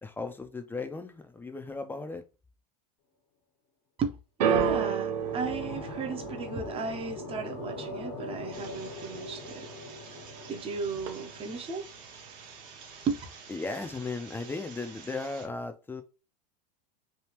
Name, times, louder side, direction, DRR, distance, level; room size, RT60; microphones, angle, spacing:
voice 1, 0.0-2.3 13.5-16.0, left 3 dB, 10° left, 0.5 m, -36 dB
voice 2, 4.4-9.7 10.5-11.9 13.1-13.2, right 4 dB, 25° right, 0.8 m, -35 dB
sound 1, 4.4-10.7 10.9-11.6 12.3-12.4, right 7 dB, 85° right, 0.7 m, -33 dB
sound 2, 4.7-11.8, left 2 dB, 80° left, 1.3 m, -42 dB
sound 3, 8.5-15.5, right 5 dB, 55° right, 1.3 m, -49 dB
3.4 x 2.3 x 2.9 m
hypercardioid pair, 105°, 21 cm